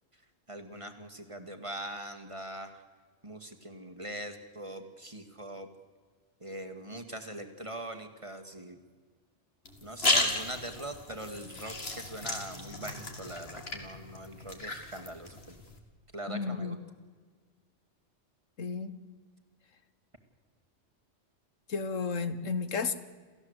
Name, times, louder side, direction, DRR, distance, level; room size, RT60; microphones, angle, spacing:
voice 1, 0.5-2.8 3.2-5.7 6.4-8.8 9.8-15.6 16.1-16.8, right 1 dB, 25° right, 7 dB, 2.0 m, -42 dB
sound 1, 9.6-15.8, left 2 dB, 55° left, 2.8 m, -34 dB
voice 2, 16.3-16.8 18.6-18.9 21.7-22.9, left 5 dB, 85° left, 11 dB, 1.6 m, -32 dB
28.5 x 15.0 x 8.1 m, 1.5 s
omnidirectional pair, 1.3 m